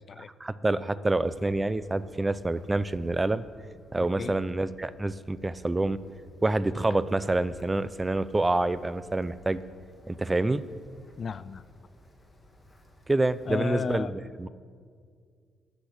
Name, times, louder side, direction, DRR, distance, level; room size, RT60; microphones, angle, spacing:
voice 1, 0.4-3.4 3.9-6.0 6.4-9.6 10.1-10.6 13.1-14.1 14.4-14.5, right 2 dB, 20° right, 16 dB, 0.5 m, -27 dB
Wind, 1.2-14.0, left 1 dB, 15° left, 1.7 m, -54 dB
voice 2, 11.2-11.6 13.5-14.1, left 6 dB, 45° left, 17 dB, 0.3 m, -33 dB
13.5 x 6.3 x 8.5 m, 2.1 s
cardioid pair, 90°, 0 cm